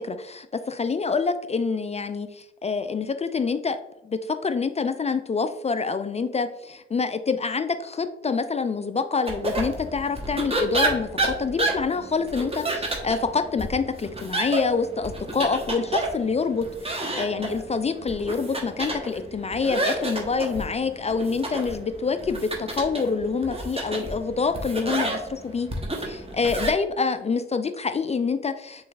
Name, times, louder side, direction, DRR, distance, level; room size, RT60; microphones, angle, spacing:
voice 1, 0.0-3.8 4.0-25.7 26.0-28.9, left 4 dB, 25° left, 10 dB, 0.4 m, -26 dB
sound 1, 9.3-26.7, right 2 dB, 20° right, 1.2 m, -30 dB
6.8 x 3.1 x 2.4 m, 0.87 s
hypercardioid pair, 40°, 29 cm